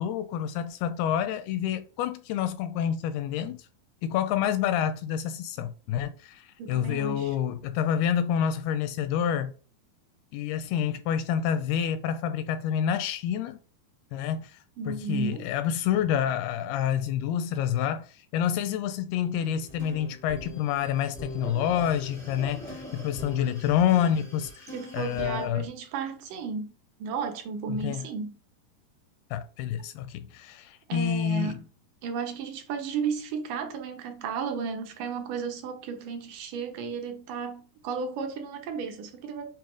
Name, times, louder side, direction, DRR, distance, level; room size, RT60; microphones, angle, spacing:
voice 1, 0.0-3.7 4.0-9.5 10.3-13.6 14.1-14.6 14.9-24.7 24.9-25.7 27.7-28.1 29.3-31.6, left 9 dB, 85° left, 2.3 m, -28 dB
voice 2, 6.6-7.4 14.8-15.5 24.7-26.7 27.0-28.4 30.9-31.6 32.0-39.5, right 5 dB, 70° right, 2.1 m, -34 dB
sound 1, 19.5-25.5, equal, 10° left, 0.5 m, -42 dB
7.6 x 2.9 x 5.0 m
omnidirectional pair, 4.8 m